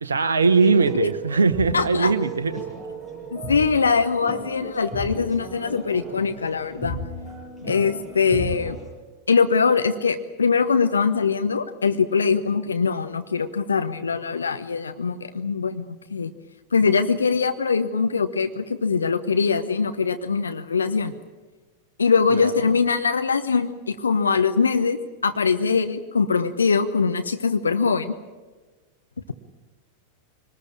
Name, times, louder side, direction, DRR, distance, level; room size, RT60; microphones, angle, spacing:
voice 1, 0.0-2.6 22.3-22.7, right 4 dB, 70° right, 11 dB, 0.9 m, -20 dB
sound 1, 0.6-8.9, right 1 dB, 5° left, 7.5 m, -35 dB
voice 2, 1.7-2.1 3.3-7.0 7.6-8.8 9.3-16.3 16.7-21.1 22.0-28.1, left 5 dB, 75° left, 9 dB, 1.0 m, -22 dB
24.0 x 19.5 x 8.7 m, 1.3 s
figure-of-eight pair, 90°, 0 cm